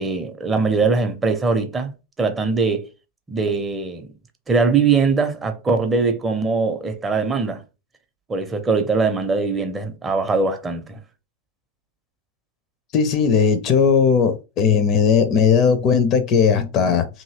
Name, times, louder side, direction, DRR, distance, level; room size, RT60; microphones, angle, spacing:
voice 1, 0.0-1.9 2.2-2.8 3.3-4.1 4.5-7.6 8.3-11.0, right 4 dB, 15° right, 0.5 m, -21 dB
voice 2, 12.9-17.1, left 6 dB, 35° left, 0.5 m, -17 dB
2.7 x 2.7 x 2.8 m
figure-of-eight pair, 90°, 0 cm